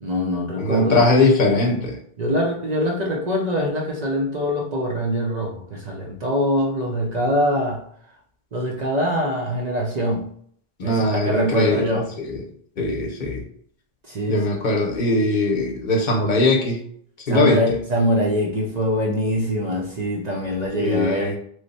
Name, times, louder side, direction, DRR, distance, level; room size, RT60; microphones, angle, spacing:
voice 1, 0.0-1.0 2.2-7.8 8.5-10.3 10.8-12.1 14.1-14.4 17.3-21.4, equal, 45° right, -2 dB, 0.7 m, -23 dB
voice 2, 0.6-2.0 10.8-12.4 12.8-13.4 14.3-16.8 17.3-17.6 20.8-21.4, left 2 dB, 50° left, 1 dB, 0.9 m, -20 dB
3.2 x 2.1 x 4.0 m, 0.62 s
omnidirectional pair, 1.1 m